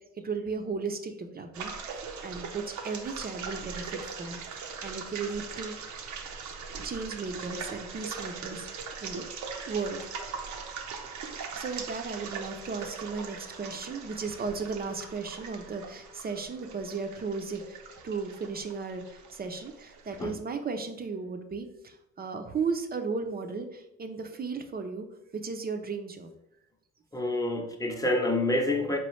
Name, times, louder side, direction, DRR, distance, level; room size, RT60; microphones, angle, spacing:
voice 1, 0.2-6.0 6.4-9.2 9.7-10.0 11.5-25.1 25.3-26.3, right 4 dB, 30° right, 6 dB, 0.5 m, -35 dB
sound 1, 1.5-20.3, right 5 dB, 75° right, 0.7 m, -41 dB
voice 2, 27.1-29.0, left 1 dB, 10° left, 3 dB, 0.7 m, -27 dB
4.4 x 3.1 x 3.1 m, 0.83 s
cardioid pair, 90°, 30 cm